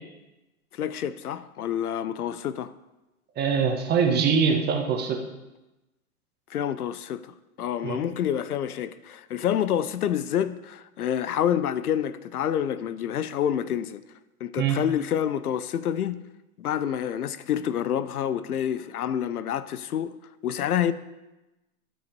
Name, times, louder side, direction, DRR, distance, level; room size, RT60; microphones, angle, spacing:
voice 1, 0.7-2.7 6.5-14.0 14.4-16.2 16.6-20.1 20.4-20.9, left 9 dB, 85° left, 0.7 m, -28 dB
voice 2, 3.4-5.2 7.8-8.0 14.6-14.8, right 6 dB, 20° right, 1.4 m, -23 dB
12.0 x 5.5 x 5.3 m
hypercardioid pair, 125°, 43 cm